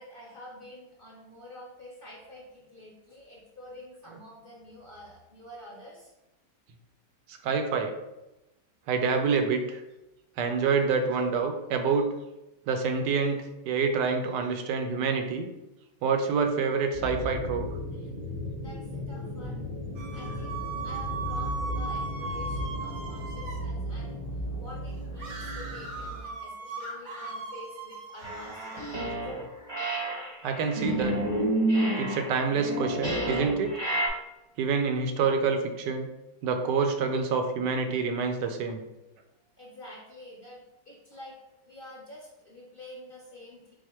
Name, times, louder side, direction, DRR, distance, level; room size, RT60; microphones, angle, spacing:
voice 1, 0.0-6.1 18.6-19.6 20.1-24.2 24.6-29.4 39.6-41.4 41.7-43.7, left 1 dB, 40° left, -5 dB, 0.8 m, -48 dB
voice 2, 7.3-7.9 8.9-9.8 10.4-12.1 12.7-15.5 16.0-17.7 30.4-31.2 32.0-33.8 34.6-36.1 36.4-38.8, right 5 dB, 80° right, 5 dB, 1.2 m, -27 dB
sound 1, 16.9-26.2, left 1 dB, 15° left, 0.8 m, -35 dB
sound 2, 20.0-23.7 25.2-29.0, right 4 dB, 55° right, 0.8 m, -38 dB
sound 3, 28.2-29.4 29.7-34.1, right 1 dB, 25° right, 0.7 m, -29 dB
4.6 x 2.1 x 4.3 m, 0.97 s
omnidirectional pair, 1.9 m